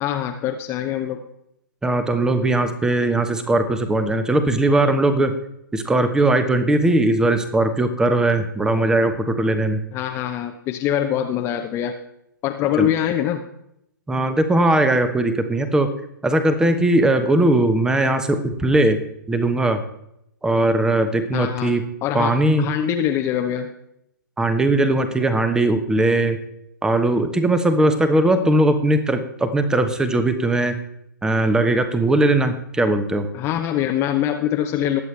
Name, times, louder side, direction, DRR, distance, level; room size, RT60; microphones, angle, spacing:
voice 1, 0.0-1.2 9.9-11.9 12.4-13.4 21.3-21.7 22.0-23.8 33.3-35.0, left 10 dB, 25° left, 4 dB, 0.8 m, -23 dB
voice 2, 1.8-5.3 5.7-9.8 12.8-12.9 14.1-15.9 16.2-19.0 19.3-19.8 20.4-21.8 22.1-22.7 24.4-26.4 26.8-30.7 31.2-33.3, right 2 dB, 5° right, 10 dB, 1.0 m, -19 dB
20.5 x 8.0 x 3.3 m, 0.78 s
figure-of-eight pair, 125°, 11 cm